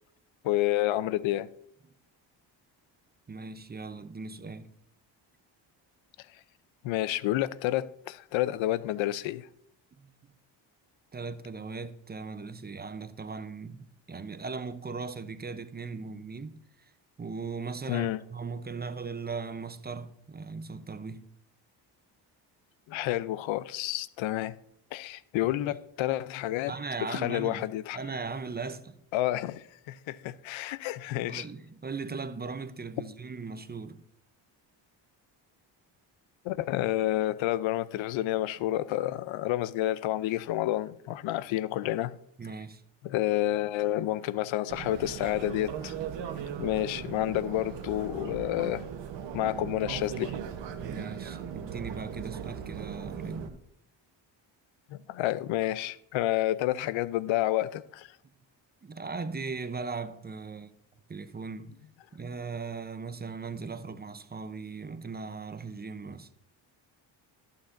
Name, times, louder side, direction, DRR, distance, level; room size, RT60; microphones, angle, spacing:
voice 1, 0.4-1.5 6.8-9.5 17.9-18.2 22.9-24.5 24.9-26.7 27.1-28.0 29.1-31.4 36.4-42.2 43.0-45.9 46.6-48.9 49.3-50.3 54.9-58.1, left 14 dB, 80° left, 0.5 m, -29 dB
voice 2, 3.3-4.7 10.0-10.1 11.1-16.9 17.2-21.3 25.4-25.5 26.7-27.7 27.9-29.0 31.3-34.0 42.4-42.8 50.7-53.6 58.8-60.7 61.1-61.8 62.1-66.3, right 4 dB, 20° right, 0.6 m, -38 dB
sound 1, 44.7-53.5, right 8 dB, 65° right, 1.1 m, -38 dB
14.5 x 6.6 x 2.5 m
cardioid pair, 75°, 46 cm